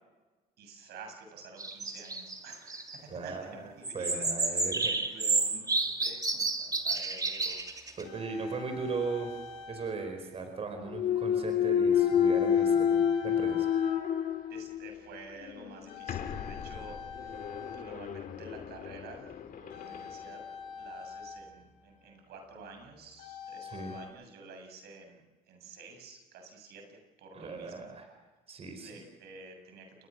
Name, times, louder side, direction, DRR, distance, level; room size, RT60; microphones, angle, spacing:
voice 1, 0.6-4.7 5.0-7.8 14.5-20.4 20.7-27.9 28.8-30.1, right 3 dB, 75° right, 5 dB, 7.3 m, -50 dB
sound 1, 1.6-3.0 3.8-8.0, right 3 dB, 20° right, 2.9 m, -31 dB
voice 2, 3.1-5.0 8.0-9.3 9.7-13.7 23.6-23.9 27.3-28.1 28.5-29.0, right 4 dB, 35° right, 6 dB, 4.7 m, -38 dB
sound 2, 6.6-6.7 7.6-10.2 10.5-10.8 11.9-14.7 15.0-15.4 15.9-18.5 19.7-22.1 23.2-24.1, left 5 dB, 85° left, 5.5 m, -46 dB
Thump thud, 10.9-14.9 15.4-20.1, left 8 dB, 55° left, 2.7 m, -29 dB
29.5 x 21.5 x 6.3 m, 1.2 s
cardioid pair, 110°, 17 cm